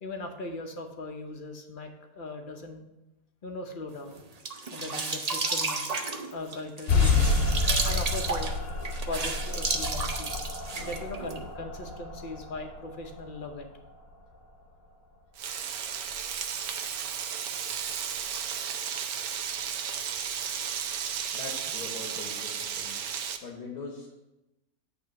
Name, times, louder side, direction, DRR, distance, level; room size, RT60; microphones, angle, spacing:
voice 1, 0.0-2.8 3.4-4.2 4.7-5.9 6.3-7.4 7.8-8.5 9.1-13.6 19.9-20.0, left 2 dB, 40° left, 4 dB, 0.8 m, -39 dB
sound 1, 4.1-11.4, right 3 dB, 40° right, 0.5 m, -32 dB
sound 2, 6.9-14.0, left 3 dB, 65° left, 1.3 m, -29 dB
Frying (food), 15.4-23.4, right 8 dB, 75° right, 1.1 m, -34 dB
voice 2, 21.3-22.9 23.4-24.2, left 3 dB, 85° left, 0 dB, 1.7 m, -41 dB
8.7 x 3.3 x 6.3 m, 0.95 s
omnidirectional pair, 1.6 m